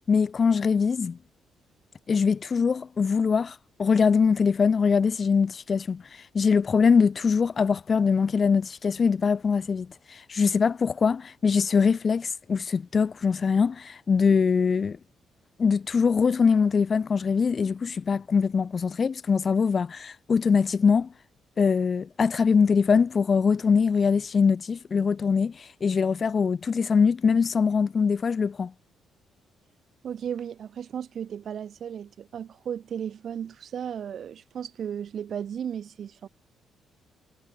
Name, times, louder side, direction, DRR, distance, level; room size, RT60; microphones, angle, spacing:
voice 1, 0.1-1.2 2.1-6.0 6.3-15.0 15.6-21.1 21.6-28.7, left 5 dB, 40° left, 0.7 m, -23 dB
voice 2, 30.0-36.3, right 8 dB, 60° right, 3.4 m, -35 dB
cardioid pair, 90°, 0 cm